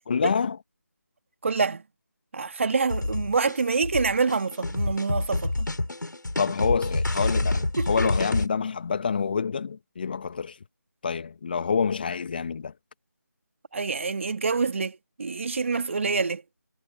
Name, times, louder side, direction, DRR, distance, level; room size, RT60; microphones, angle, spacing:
voice 1, 0.1-0.6 6.4-10.6 11.0-12.7, left 6 dB, 30° left, 1.4 m, -27 dB
voice 2, 1.4-1.8 2.3-5.7 7.8-7.9 13.7-16.4, right 4 dB, 40° right, 1.9 m, -26 dB
sound 1, 2.9-8.5, left 2 dB, 75° left, 6.6 m, -27 dB
figure-of-eight pair, 165°, 10 cm